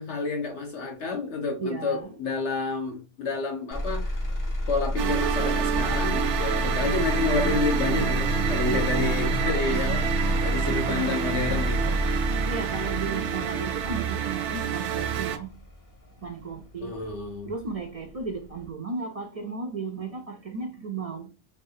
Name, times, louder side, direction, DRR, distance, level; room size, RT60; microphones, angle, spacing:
voice 1, 0.0-4.1 4.7-10.1 10.4-12.0 16.8-17.5, left 3 dB, 80° left, 1.3 m, -29 dB
voice 2, 1.6-2.1 8.7-8.9 10.7-11.3 12.5-15.6 16.2-17.0 17.4-21.3, right 4 dB, 55° right, 0.4 m, -34 dB
Motor vehicle (road), 3.7-17.7 18.2-18.7, equal, 20° left, 0.6 m, -30 dB
sound 1, 5.0-15.4, right 8 dB, 90° right, 0.9 m, -28 dB
3.7 x 3.3 x 2.6 m
omnidirectional pair, 1.2 m